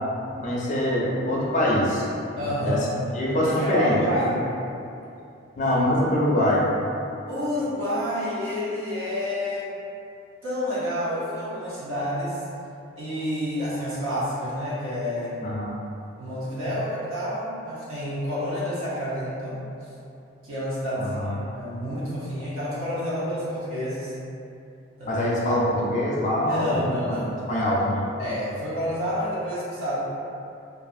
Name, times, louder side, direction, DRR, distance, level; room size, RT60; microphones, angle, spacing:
voice 1, 0.4-2.1 2.5-2.8 3.2-4.0 4.2-4.3 5.6-6.6 15.4-15.8 21.0-21.4 25.1-27.2 27.5-28.1, left 1 dB, 35° left, -4 dB, 0.4 m, -24 dB
voice 2, 2.4-2.9 3.4-4.4 7.3-9.7 10.4-12.4 13.0-15.4 16.2-19.6 20.4-21.2 21.5-24.1 25.0-25.3 26.4-27.3 28.2-30.0, equal, 90° right, -9 dB, 0.8 m, -29 dB
2.6 x 2.4 x 2.4 m, 2.7 s
head